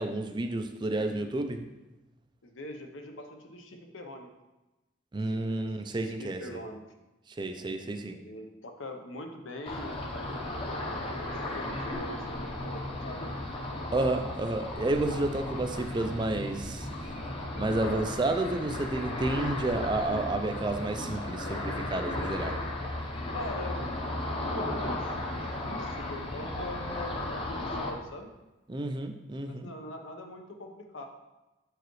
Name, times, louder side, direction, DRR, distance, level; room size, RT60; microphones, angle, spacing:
voice 1, 0.0-1.6 5.1-6.4 7.4-8.2 13.9-16.9 17.6-22.6 28.7-29.7, right 2 dB, 20° right, 6 dB, 0.4 m, -30 dB
voice 2, 0.9-1.3 2.4-4.3 5.1-6.9 8.1-10.7 11.2-13.2 23.3-23.9 24.5-25.0 25.3-28.3 29.5-31.1, left 1 dB, 75° left, 4 dB, 0.9 m, -42 dB
Ocean, 9.7-27.9, left 1 dB, 25° left, 0.8 m, -35 dB
7.8 x 4.8 x 3.1 m, 1.0 s
head